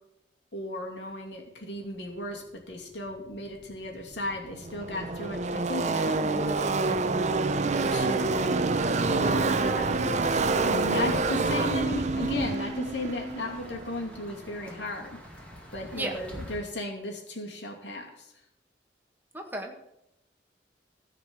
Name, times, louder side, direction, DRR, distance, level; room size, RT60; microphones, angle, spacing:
voice 1, 0.5-7.2 7.9-8.5 9.1-15.2 15.7-18.3, left 1 dB, 85° left, 0 dB, 2.5 m, -36 dB
Car passing by / Race car auto racing, 3.7-3.8 4.0-14.6, right 3 dB, 40° right, 0.6 m, -27 dB
sound 1, 7.6-16.6, equal, 10° left, 2.2 m, -48 dB
voice 2, 19.3-19.8, right 1 dB, 10° right, 2 dB, 1.5 m, -34 dB
14.0 x 5.1 x 7.4 m, 0.83 s
head